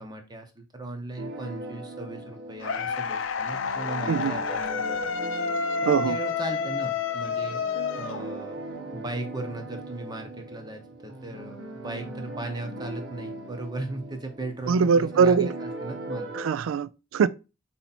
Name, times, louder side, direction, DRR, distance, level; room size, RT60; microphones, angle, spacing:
voice 1, 0.0-5.1 5.3-5.5 5.8-7.6 8.0-8.6 8.9-16.3, right 2 dB, 20° right, 0.8 m, -37 dB
sound 1, 1.2-16.4, right 2 dB, 60° right, 1.1 m, -39 dB
sound 2, 2.6-8.7, left 5 dB, 70° left, 0.5 m, -29 dB
voice 2, 14.7-15.5 16.3-17.3, right 6 dB, 80° right, 0.3 m, -22 dB
4.3 x 2.8 x 4.1 m
head